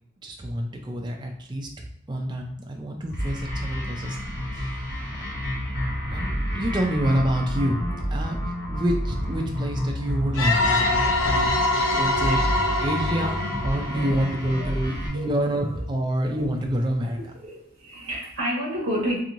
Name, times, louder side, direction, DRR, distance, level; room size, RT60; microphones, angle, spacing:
voice 1, 0.2-1.7 2.1-4.9 5.1-5.4 5.9-11.6 11.9-12.4 12.8-17.2, equal, 20° right, 1 dB, 0.4 m, -28 dB
sound 1, 3.1-15.1, equal, 50° left, 1.3 m, -30 dB
sound 2, 10.3-14.9, left 2 dB, 80° left, 0.5 m, -25 dB
voice 2, 15.1-15.8 16.2-16.4 17.4-19.2, equal, 85° right, -4 dB, 0.7 m, -31 dB
3.0 x 2.7 x 2.5 m, 0.74 s
head